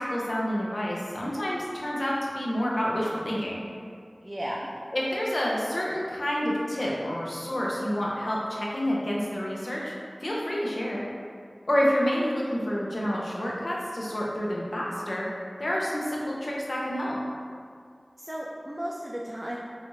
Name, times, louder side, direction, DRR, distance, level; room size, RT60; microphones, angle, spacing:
voice 1, 0.0-3.6 4.9-9.9 10.2-11.0 11.7-15.3 15.6-17.2, equal, 70° left, -4 dB, 0.6 m, -28 dB
voice 2, 4.2-4.8 18.2-19.6, equal, 30° right, -4 dB, 0.4 m, -34 dB
4.0 x 2.4 x 3.0 m, 2.2 s
wide cardioid pair, 45°, 0 cm